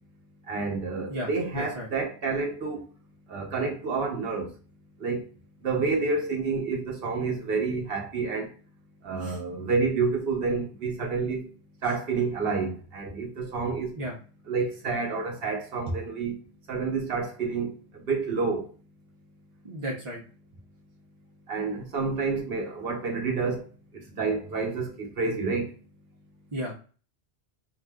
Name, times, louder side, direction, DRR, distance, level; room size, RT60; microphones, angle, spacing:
voice 1, 0.5-2.8 3.3-4.5 5.0-5.2 5.6-8.5 9.0-11.5 11.8-13.9 14.5-16.4 16.7-18.7 21.5-23.7 23.9-25.7, right 4 dB, 65° right, 1.0 m, -29 dB
voice 2, 1.1-1.9 9.2-9.4 14.0-14.1 15.9-16.0 19.6-20.2 26.5-26.7, equal, 35° right, 0.6 m, -34 dB
2.6 x 2.2 x 3.5 m
omnidirectional pair, 1.1 m